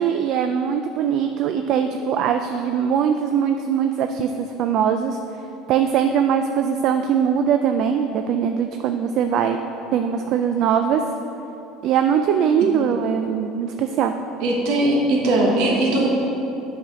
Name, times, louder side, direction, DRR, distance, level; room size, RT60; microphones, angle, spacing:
voice 1, 0.0-5.2 5.7-9.6 9.9-11.0 11.8-14.1, right 8 dB, 50° right, 7 dB, 0.3 m, -21 dB
voice 2, 14.4-16.1, right 1 dB, 70° right, -2 dB, 1.1 m, -19 dB
8.3 x 4.1 x 5.7 m, 3.0 s
cardioid pair, 145°, 0 cm